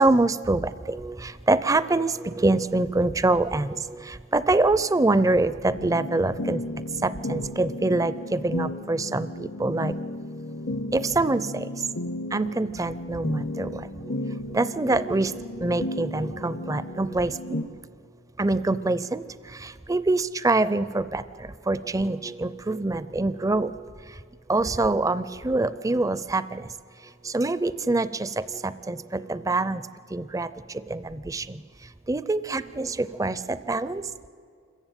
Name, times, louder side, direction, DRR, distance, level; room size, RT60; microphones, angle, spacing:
voice 1, 0.0-6.6 7.0-10.0 10.9-11.8 12.3-17.8 18.4-24.2 24.5-26.7 27.0-29.8 30.1-34.1, right 2 dB, 15° right, 15 dB, 0.4 m, -25 dB
sound 1, 5.7-17.6, left 1 dB, 55° left, 0.8 m, -34 dB
26.5 x 14.5 x 9.1 m, 2.3 s
head